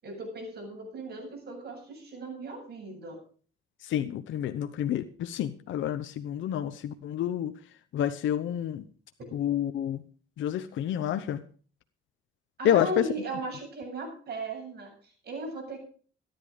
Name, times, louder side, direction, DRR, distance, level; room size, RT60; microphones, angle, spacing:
voice 1, 0.0-3.2 9.2-9.3 12.6-15.8, right 2 dB, 55° right, 1 dB, 7.9 m, -37 dB
voice 2, 3.8-7.5 7.9-8.8 9.3-10.0 10.4-11.4 12.6-13.0, left 10 dB, 75° left, 8 dB, 0.9 m, -29 dB
14.0 x 10.5 x 5.0 m, 0.43 s
cardioid pair, 90°, 20 cm